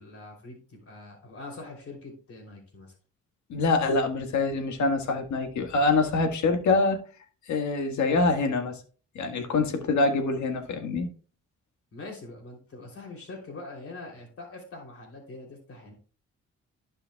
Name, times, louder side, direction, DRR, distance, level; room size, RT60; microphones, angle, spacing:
voice 1, 0.0-2.9 11.9-15.9, left 2 dB, 50° left, 3.2 m, -43 dB
voice 2, 3.5-7.0 7.5-8.8 9.1-11.1, left 3 dB, 70° left, 1.7 m, -25 dB
15.0 x 5.5 x 2.3 m
cardioid pair, 90°, 30 cm